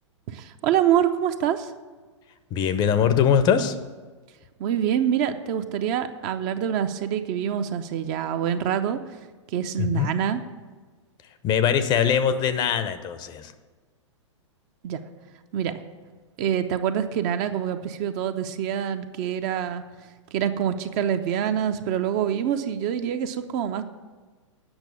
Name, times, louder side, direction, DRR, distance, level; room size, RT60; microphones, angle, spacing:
voice 1, 0.3-1.7 4.6-9.0 9.5-10.4 14.8-15.0 15.5-15.8 16.4-19.8 20.3-23.8, right 9 dB, 35° right, 9 dB, 0.6 m, -25 dB
voice 2, 2.5-3.7 9.8-10.1 11.4-13.5, left 8 dB, 25° left, 11 dB, 0.6 m, -22 dB
8.9 x 6.0 x 8.3 m, 1.4 s
figure-of-eight pair, 105°, 16 cm